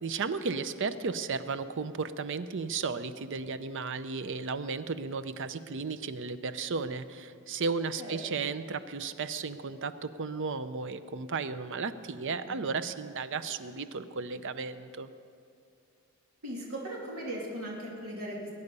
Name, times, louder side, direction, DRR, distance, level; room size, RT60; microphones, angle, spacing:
voice 1, 0.0-15.1, right 4 dB, 60° right, 12 dB, 0.6 m, -34 dB
voice 2, 8.0-8.5 12.4-12.6 16.4-18.5, right 1 dB, 90° right, -3 dB, 2.8 m, -39 dB
22.0 x 9.7 x 5.4 m, 2.4 s
head